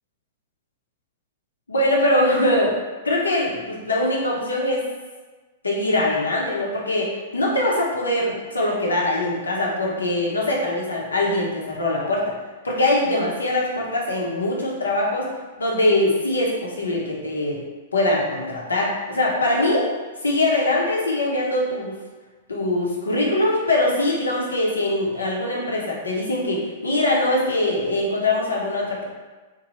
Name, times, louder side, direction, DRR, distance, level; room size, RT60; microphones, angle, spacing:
voice 1, 1.7-2.7 3.0-4.8 5.6-12.3 12.6-15.3 15.6-17.6 17.9-19.8 20.2-21.9 22.5-29.0, left 1 dB, 85° left, -3 dB, 0.7 m, -22 dB
3.0 x 2.2 x 2.8 m, 1.3 s
figure-of-eight pair, 105°, 0 cm